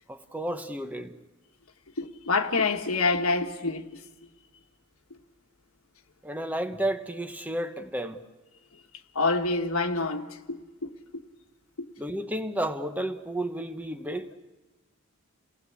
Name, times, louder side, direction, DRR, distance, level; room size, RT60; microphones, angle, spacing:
voice 1, 0.1-1.2 6.2-8.2 12.0-14.3, right 1 dB, 10° right, 1.0 m, -32 dB
voice 2, 2.0-3.9 9.1-10.9 11.8-11.9, left 3 dB, 80° left, 1.5 m, -27 dB
28.5 x 18.5 x 8.4 m
head